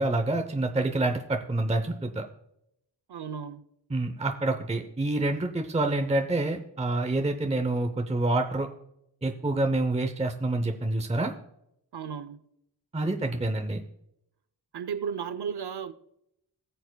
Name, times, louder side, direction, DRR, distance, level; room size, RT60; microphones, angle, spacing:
voice 1, 0.0-2.2 3.9-8.7 9.2-11.3 12.9-13.8, right 2 dB, 15° right, 0.7 m, -27 dB
voice 2, 3.1-3.6 11.9-12.5 14.7-15.9, right 7 dB, 65° right, 0.7 m, -34 dB
20.5 x 7.1 x 2.2 m
wide cardioid pair, 100°, 43 cm